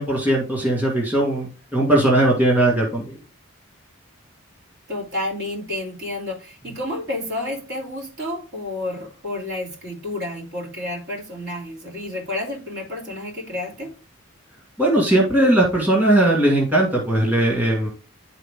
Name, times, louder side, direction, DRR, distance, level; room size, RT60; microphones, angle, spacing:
voice 1, 0.0-3.1 14.8-17.9, right 1 dB, 10° right, -3 dB, 1.8 m, -19 dB
voice 2, 4.9-13.9, left 1 dB, 60° right, -3 dB, 3.4 m, -30 dB
10.5 x 4.0 x 3.6 m, 0.34 s
head